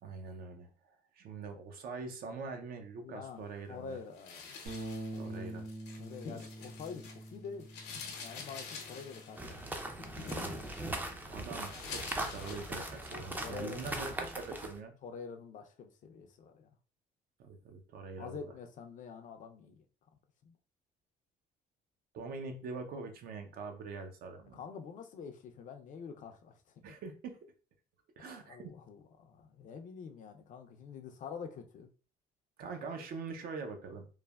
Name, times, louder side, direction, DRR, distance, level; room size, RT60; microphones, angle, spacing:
voice 1, 0.0-0.7 1.1-4.0 5.2-5.7 10.9-11.0 11.3-14.9 17.4-18.4 22.1-24.6 26.8-27.4 28.2-28.7 32.6-34.1, right 4 dB, 60° right, 0.6 m, -43 dB
voice 2, 3.0-4.7 5.1-5.4 6.0-7.7 8.2-9.6 9.8-10.5 13.1-13.9 15.0-16.8 18.2-19.8 20.4-20.5 24.5-26.6 26.9-27.0 28.2-31.9, left 6 dB, 50° left, 0.5 m, -47 dB
sound 1, 4.1-7.3 7.6-13.3 13.7-14.1, left 5 dB, 85° left, 0.8 m, -48 dB
Bass guitar, 4.7-10.9, right 1 dB, 85° right, 1.0 m, -46 dB
sound 2, 9.4-14.8, right 1 dB, 10° right, 0.4 m, -40 dB
3.2 x 2.1 x 2.2 m
cardioid pair, 110°, 17 cm